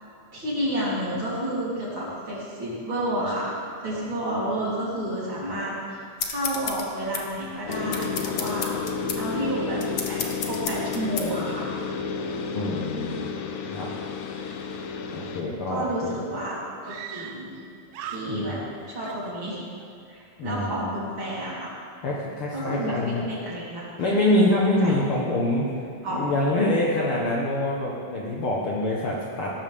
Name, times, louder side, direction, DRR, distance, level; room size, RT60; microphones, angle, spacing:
voice 1, 0.3-3.5 3.8-6.0 6.2-8.8 9.2-9.8 10.1-11.7 15.7-16.6 16.8-17.5 18.0-18.6 18.9-19.6 20.1-21.7 22.5-23.0 23.2-23.9 24.8-24.9 26.0-26.2, right 1 dB, 40° right, -8 dB, 4.2 m, -30 dB
sound 1, 6.2-11.3, left 6 dB, 85° left, 0.9 m, -33 dB
sound 2, 7.7-15.4, left 6 dB, 70° left, 2.1 m, -31 dB
voice 2, 12.5-13.4 13.7-13.9 15.1-16.2 18.3-18.6 20.4-20.9 22.0-23.2 24.0-25.7 26.1-29.6, left 1 dB, 55° left, -4 dB, 1.8 m, -25 dB
Screaming, 16.8-17.6 17.9-18.7 19.0-19.9, right 8 dB, 80° right, 2.0 m, -40 dB
17.5 x 13.5 x 3.6 m, 2.3 s
omnidirectional pair, 3.6 m